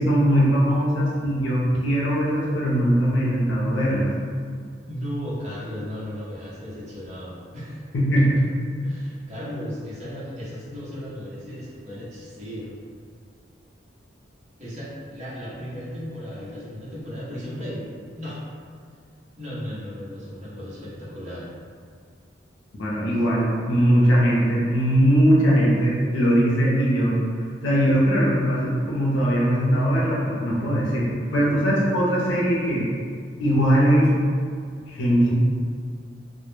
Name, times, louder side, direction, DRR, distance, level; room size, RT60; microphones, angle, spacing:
voice 1, 0.0-4.1 7.9-8.5 22.8-27.2 27.6-32.9 33.4-34.1 34.9-35.3, equal, 80° left, -5 dB, 0.5 m, -20 dB
voice 2, 4.8-7.8 8.8-12.8 14.6-17.8 18.1-18.4 19.4-21.5, equal, 35° right, -9 dB, 0.7 m, -35 dB
2.1 x 2.1 x 3.0 m, 2.1 s
head